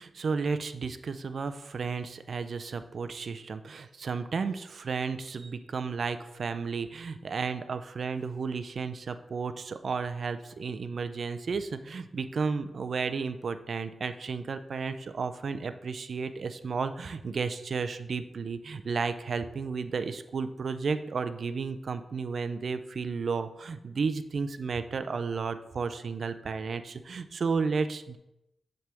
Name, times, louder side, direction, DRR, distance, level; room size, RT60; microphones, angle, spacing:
voice 1, 0.0-28.2, right 5 dB, 55° right, 10 dB, 0.5 m, -33 dB
7.7 x 3.5 x 6.1 m, 0.89 s
wide cardioid pair, 110°, 0 cm